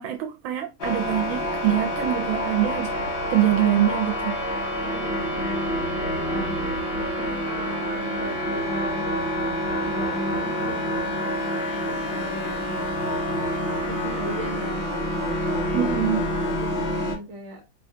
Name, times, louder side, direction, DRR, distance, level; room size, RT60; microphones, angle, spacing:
voice 1, 0.0-3.0 3.3-4.3 15.7-16.2, right 12 dB, 80° right, 1.3 m, -24 dB
sound 1, 0.8-17.1, equal, 55° left, 0.7 m, -27 dB
voice 2, 4.8-9.0 9.8-11.5 11.9-13.0 13.9-14.9 16.3-17.6, right 1 dB, 50° right, 1.2 m, -37 dB
4.5 x 2.3 x 2.6 m
omnidirectional pair, 2.2 m